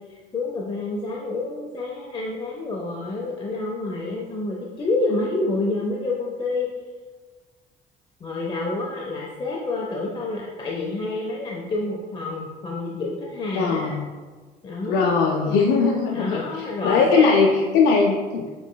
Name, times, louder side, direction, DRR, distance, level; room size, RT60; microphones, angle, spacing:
voice 1, 0.0-6.7 8.2-13.9 14.6-15.6 16.1-17.8, left 2 dB, 30° left, -2 dB, 0.5 m, -28 dB
voice 2, 13.5-14.1 14.9-18.5, left 4 dB, 80° left, 0 dB, 0.4 m, -20 dB
6.0 x 3.0 x 2.2 m, 1.4 s
cardioid pair, 110°, 17 cm